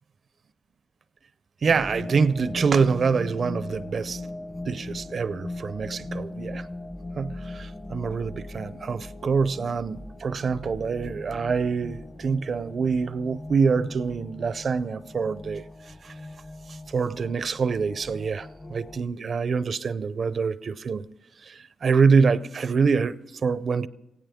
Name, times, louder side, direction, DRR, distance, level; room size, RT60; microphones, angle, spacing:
voice 1, 1.6-4.3 4.7-6.7 7.2-15.6 16.0-16.1 16.7-21.1 21.4-23.9, right 5 dB, 50° right, 0.5 m, -25 dB
sound 1, 1.7-19.0, left 2 dB, 25° left, 0.8 m, -39 dB
17.0 x 16.5 x 3.6 m
cardioid pair, 100°, 0 cm